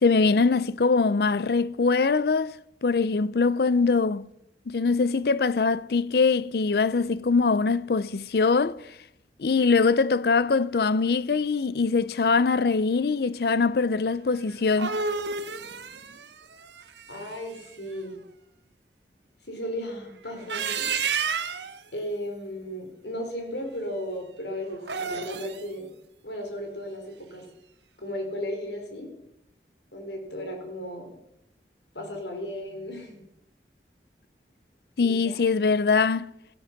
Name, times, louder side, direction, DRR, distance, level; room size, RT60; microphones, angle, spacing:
voice 1, 0.0-2.6 2.8-4.3 4.7-8.8 9.4-15.0 35.0-36.3, left 4 dB, 65° left, 0.5 m, -23 dB
sound 1, 14.5-17.6 20.3-21.8 24.7-25.6, right 5 dB, 85° right, 1.2 m, -31 dB
voice 2, 17.1-18.2 19.4-21.2 21.9-25.9 26.2-27.4 28.0-29.1 29.9-31.1 31.9-33.2 35.0-35.4, equal, 80° left, 4.1 m, -35 dB
15.5 x 13.0 x 5.8 m
head